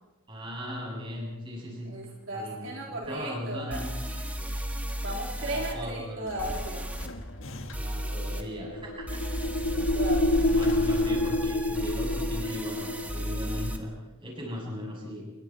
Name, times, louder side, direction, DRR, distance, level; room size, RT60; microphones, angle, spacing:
voice 1, 0.3-3.9 5.4-6.3 7.7-9.2 9.6-9.9 10.3-13.9 14.2-15.2, equal, 20° right, -2 dB, 7.9 m, -38 dB
voice 2, 1.9-4.3 5.0-6.9 9.9-10.9, right 1 dB, 60° right, -2 dB, 3.6 m, -36 dB
sound 1, 3.0-3.1 3.7-5.7 6.4-7.1 7.7-8.4 9.1-13.8, equal, 5° right, 1.7 m, -34 dB
sound 2, 6.2-8.1 9.2-12.0, left 1 dB, 60° left, 1.8 m, -42 dB
sound 3, 8.2-13.1, left 1 dB, 90° left, 1.5 m, -27 dB
28.0 x 23.0 x 4.5 m, 1.1 s
head